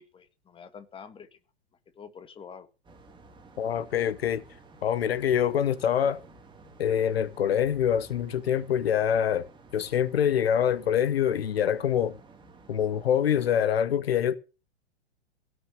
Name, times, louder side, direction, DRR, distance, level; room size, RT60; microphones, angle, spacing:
voice 1, 0.0-1.4 1.9-2.7, left 6 dB, 15° left, 1.7 m, -47 dB
sound 1, 2.8-13.6, right 3 dB, 15° right, 2.6 m, -53 dB
voice 2, 3.6-4.4 4.8-6.2 6.8-12.2 12.7-14.4, left 9 dB, 65° left, 1.1 m, -25 dB
17.0 x 6.7 x 7.4 m
figure-of-eight pair, 105°, 33 cm